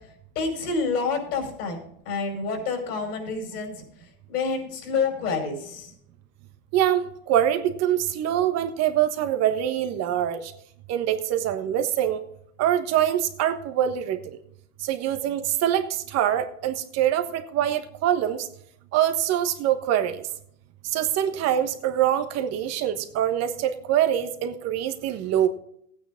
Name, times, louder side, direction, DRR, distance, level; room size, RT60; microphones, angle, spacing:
voice 1, 0.4-3.8 4.3-5.9, left 4 dB, 80° left, 3 dB, 5.4 m, -28 dB
voice 2, 6.7-10.5 10.9-12.2 12.6-14.2 14.8-15.9 16.1-18.5 18.9-20.2 20.9-25.5, right 11 dB, 35° right, 8 dB, 1.4 m, -24 dB
16.5 x 9.2 x 3.8 m, 0.70 s
supercardioid pair, 150°, 46 cm